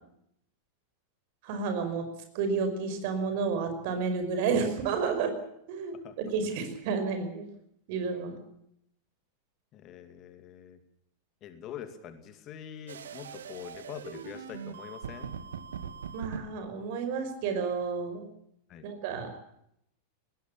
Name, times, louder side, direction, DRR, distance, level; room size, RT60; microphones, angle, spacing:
voice 1, 1.4-2.0 2.3-5.3 5.7-7.5 7.9-8.4 16.1-18.3 18.8-19.3, right 5 dB, 50° right, 8 dB, 5.4 m, -31 dB
voice 2, 9.7-10.8 11.4-15.3 18.7-18.9, left 9 dB, 35° left, 9 dB, 2.4 m, -44 dB
sound 1, 12.9-16.4, right 7 dB, 65° right, 1.6 m, -41 dB
19.5 x 18.0 x 8.6 m, 0.74 s
figure-of-eight pair, 90°, 0 cm